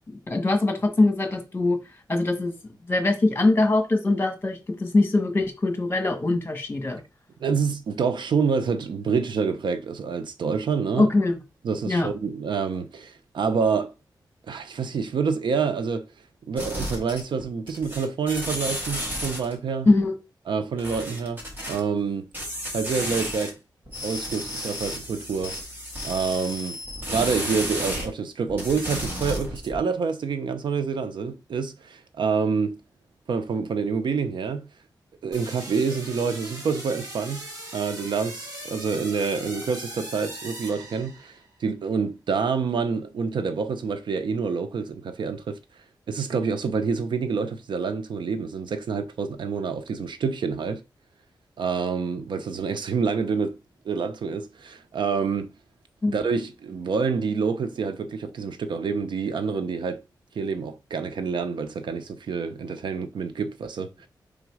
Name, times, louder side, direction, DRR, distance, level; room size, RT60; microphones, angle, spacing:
voice 1, 0.3-1.8 2.1-2.5 2.9-7.0 11.0-11.4 11.8-12.1 19.8-20.2 56.0-56.1, left 2 dB, 30° left, 1.5 m, -22 dB
voice 2, 7.4-11.1 11.6-13.9 14.5-16.1 16.5-19.9 20.5-21.4 21.7-22.3 22.7-23.6 24.0-25.6 26.0-26.8 27.1-32.8 33.3-34.7 35.2-37.5 37.7-45.6 46.1-50.8 51.6-53.6 53.8-55.5 56.1-60.0 60.3-64.1, right 5 dB, 85° right, 0.7 m, -27 dB
sound 1, 16.6-17.4 17.7-19.6 20.8-21.8 22.3-23.5 23.9-28.1 28.5-29.8, equal, 25° right, 2.6 m, -32 dB
sound 2, 35.3-41.5, right 1 dB, 45° right, 2.9 m, -39 dB
5.1 x 3.9 x 4.8 m
wide cardioid pair, 130°, 8 cm